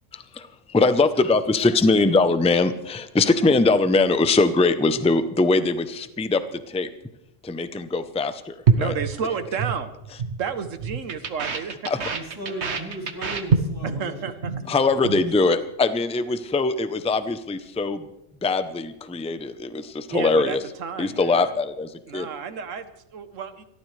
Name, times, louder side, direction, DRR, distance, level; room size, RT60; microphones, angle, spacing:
voice 1, 0.7-6.4 6.7-6.9 7.4-8.9 11.9-12.0 14.7-18.0 18.4-20.6 21.0-22.3, left 3 dB, 5° left, 11 dB, 0.5 m, -21 dB
sound 1, 8.7-9.8 10.0-10.4 10.6-14.0 14.3-14.6 14.9-15.2, right 5 dB, 60° right, 1.5 m, -25 dB
voice 2, 8.7-9.9 10.4-12.2 13.8-14.5 20.1-21.5 22.1-23.6, right 6 dB, 80° right, 10 dB, 1.4 m, -32 dB
voice 3, 12.1-14.3 14.6-15.0, right 1 dB, 15° right, -1 dB, 3.5 m, -36 dB
29.5 x 14.0 x 3.3 m, 0.89 s
omnidirectional pair, 1.3 m